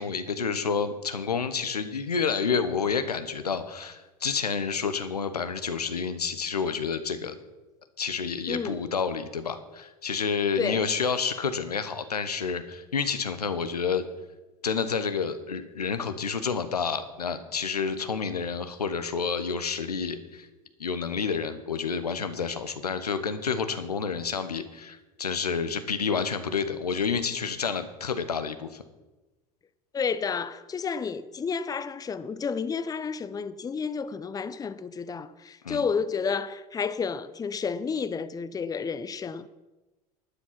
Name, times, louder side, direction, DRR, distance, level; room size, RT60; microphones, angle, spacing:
voice 1, 0.0-7.3 8.0-14.0 14.6-20.5 20.8-28.8 35.6-35.8, left 5 dB, 90° left, 1.0 m, -29 dB
voice 2, 8.5-8.8 10.6-10.9 29.9-39.5, left 5 dB, 20° left, 0.7 m, -31 dB
12.0 x 9.7 x 5.8 m
hypercardioid pair, 80°, 19 cm